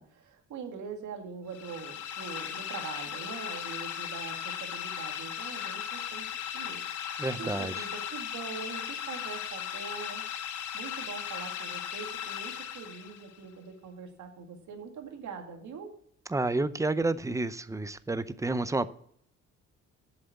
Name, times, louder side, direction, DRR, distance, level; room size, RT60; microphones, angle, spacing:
voice 1, 0.0-6.3 6.5-10.2 10.7-15.9, right 5 dB, 70° right, 4 dB, 2.0 m, -43 dB
sound 1, 1.5-13.4, left 9 dB, 80° left, 1.0 m, -37 dB
voice 2, 7.2-7.8 16.3-18.9, right 2 dB, 10° right, 15 dB, 0.5 m, -30 dB
7.4 x 6.9 x 8.0 m, 0.63 s
cardioid pair, 90°, 30 cm